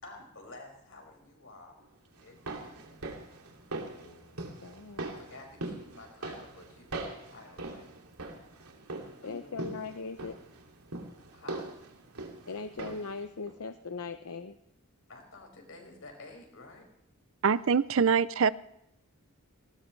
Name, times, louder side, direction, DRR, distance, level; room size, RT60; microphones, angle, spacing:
voice 1, 0.0-1.8 2.2-3.0 5.0-7.9 9.0-9.5 11.3-11.7 15.1-16.8, left 2 dB, 65° left, 5.7 m, -50 dB
sound 1, 2.2-13.2 13.5-13.6, right 2 dB, 85° right, 2.7 m, -42 dB
voice 2, 4.0-4.3 4.6-5.1 9.2-10.4 12.5-14.6, left 4 dB, 85° left, 0.8 m, -40 dB
voice 3, 17.4-18.5, right 6 dB, 60° right, 0.5 m, -24 dB
19.5 x 19.0 x 3.2 m
head